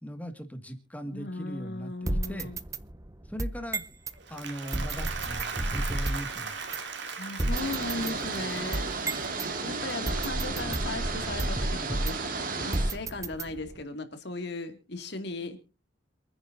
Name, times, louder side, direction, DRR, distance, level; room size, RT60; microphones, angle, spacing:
voice 1, 0.0-2.5 3.3-3.8 4.3-6.6, equal, 10° left, 6 dB, 2.0 m, -39 dB
voice 2, 1.1-2.6 7.1-8.9 9.6-15.6, left 2 dB, 55° left, 7 dB, 2.4 m, -37 dB
sound 1, 2.1-4.2 4.7-6.3 6.7-6.8 7.4-9.5 10.1-12.3 12.7-13.8, right 1 dB, 15° right, 0.6 m, -32 dB
Applause, 4.1-10.4, right 5 dB, 60° right, 2.7 m, -39 dB
sound 2, 7.5-13.0, right 4 dB, 45° right, 2.4 m, -34 dB
27.5 x 10.0 x 2.7 m, 0.32 s
head